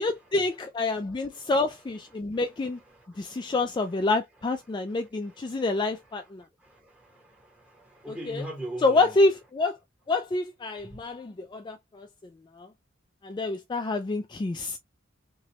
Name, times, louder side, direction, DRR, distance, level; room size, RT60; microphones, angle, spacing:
voice 1, 0.0-2.8 3.2-6.4 8.3-8.4 8.8-9.8 10.1-12.1 12.6-12.7 13.2-14.8, left 3 dB, 20° left, 0.3 m, -27 dB
voice 2, 0.9-1.5 2.3-2.5 2.7-3.5 4.9-5.6 6.6-9.2 10.8-11.0, right 1 dB, 5° right, 1.5 m, -43 dB
3.0 x 2.9 x 2.9 m
head